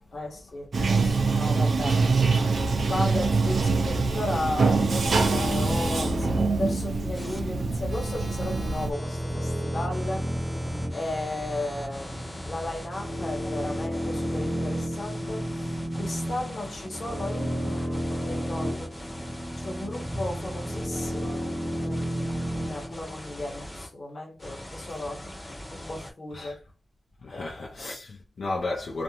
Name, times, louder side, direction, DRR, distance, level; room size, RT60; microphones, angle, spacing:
voice 1, 0.1-2.0 2.8-10.3 10.9-18.9 19.6-21.5 21.8-26.6 27.3-28.0, left 2 dB, 55° left, 0.9 m, -35 dB
Bathtub (filling or washing), 0.7-8.9, right 4 dB, 75° right, 0.4 m, -24 dB
sound 1, 4.4-23.0, equal, 10° right, 0.5 m, -32 dB
sound 2, 7.1-7.4 7.9-23.9 24.4-26.1, left 1 dB, 25° left, 0.8 m, -41 dB
voice 2, 27.2-29.0, left 2 dB, 80° left, 0.4 m, -33 dB
2.5 x 2.1 x 2.9 m
wide cardioid pair, 125°, 0 cm